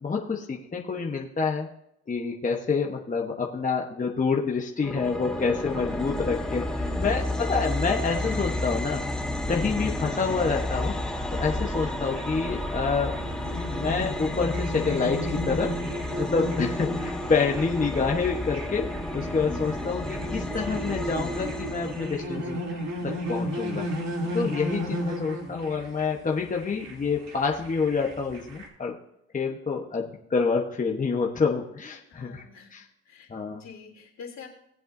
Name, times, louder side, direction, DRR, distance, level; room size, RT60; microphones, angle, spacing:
voice 1, 0.0-1.7 2.1-6.7 7.0-9.2 9.5-10.9 11.3-13.1 13.7-15.8 16.2-18.9 19.1-22.6 23.0-23.9 24.3-28.9 29.3-32.4 32.7-32.8 33.3-33.6, left 5 dB, 25° left, 0 dB, 1.1 m, -27 dB
sound 1, 4.8-22.2, left 1 dB, ahead, 1.3 m, -31 dB
voice 2, 6.8-7.4 19.5-19.8 24.7-25.0 32.1-34.5, left 5 dB, 60° left, -3 dB, 3.3 m, -46 dB
sound 2, 12.0-28.7, equal, 60° right, 2.9 m, -34 dB
18.5 x 7.7 x 2.7 m, 0.79 s
cardioid pair, 90°, 30 cm